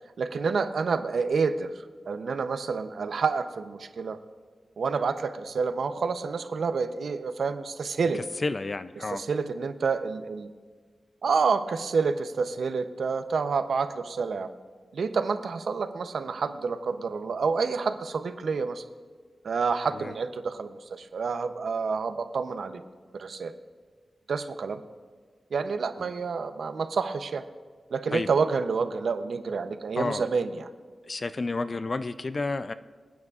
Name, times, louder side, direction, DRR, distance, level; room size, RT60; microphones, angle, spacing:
voice 1, 0.2-1.7 2.1-4.2 4.8-8.2 9.0-10.5 11.2-14.5 14.9-18.8 19.4-22.8 23.1-23.5 24.3-24.8 25.5-27.4 27.9-30.7, right 5 dB, 75° right, 9 dB, 0.7 m, -28 dB
voice 2, 8.1-9.2 19.9-20.1 28.1-28.3 30.0-30.2 31.1-32.7, left 3 dB, 35° left, 12 dB, 0.3 m, -31 dB
26.5 x 9.3 x 2.4 m, 1.5 s
wide cardioid pair, 160°, 0 cm